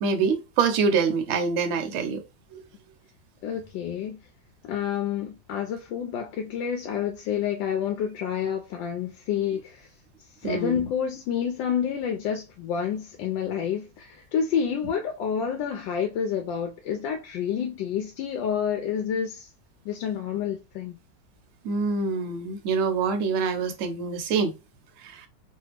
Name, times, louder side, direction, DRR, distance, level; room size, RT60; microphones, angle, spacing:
voice 1, 0.0-2.2 2.5-2.6 10.4-10.9 21.6-24.5 25.0-25.3, right 5 dB, 65° right, 0.8 m, -25 dB
voice 2, 3.4-4.2 4.6-9.9 10.4-19.5 19.8-21.0, left 8 dB, 85° left, 1.3 m, -29 dB
3.3 x 2.4 x 3.2 m
omnidirectional pair, 2.0 m